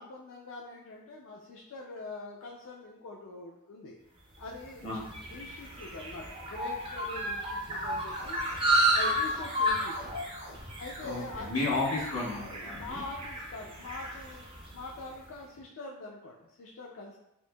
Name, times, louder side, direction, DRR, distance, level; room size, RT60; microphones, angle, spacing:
voice 1, 0.0-4.0 4.4-5.0 5.3-8.6 8.9-10.1 10.8-11.8 12.7-17.2, left 3 dB, 65° left, -3 dB, 0.4 m, -44 dB
sound 1, 4.4-15.0, right 1 dB, 25° right, 0.5 m, -32 dB
sound 2, 8.0-13.5, right 1 dB, 55° right, 1.4 m, -46 dB
voice 2, 11.0-13.0, left 2 dB, 85° left, -4 dB, 1.1 m, -33 dB
4.4 x 2.5 x 2.2 m, 0.87 s
head